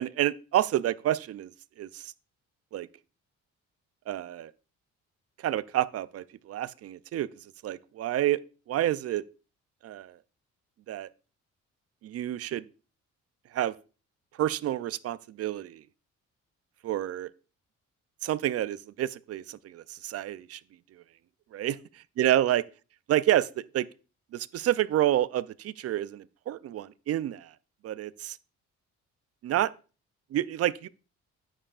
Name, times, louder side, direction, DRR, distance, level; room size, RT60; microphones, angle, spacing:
voice 1, 0.0-1.5 1.8-2.1 2.7-2.9 4.1-4.5 5.4-7.3 7.6-8.4 8.7-9.2 9.8-10.1 10.9-11.1 12.0-12.6 13.5-13.7 14.4-15.8 16.8-17.3 18.2-20.6 21.5-21.8 22.2-22.6 23.1-23.9 24.3-27.5 27.8-28.4 29.4-29.7 30.3-30.9, right 13 dB, 55° right, 0.4 m, -28 dB
9.4 x 8.7 x 2.4 m
cardioid pair, 90°, 30 cm